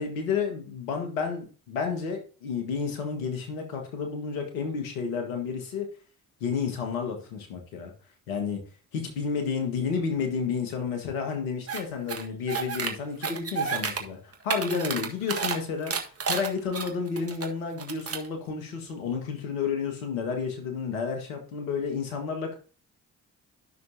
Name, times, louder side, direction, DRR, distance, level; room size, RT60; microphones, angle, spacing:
voice 1, 0.0-5.9 6.4-7.9 8.3-8.6 8.9-15.9 16.3-22.6, left 5 dB, 85° left, 4 dB, 1.7 m, -31 dB
sound 1, 11.7-11.8 12.1-12.9 13.2-14.0 14.3-15.6 15.9-17.5 17.8-18.3, right 5 dB, 35° right, 1.6 m, -30 dB
12.5 x 6.1 x 2.8 m, 0.37 s
hypercardioid pair, 45°, 41 cm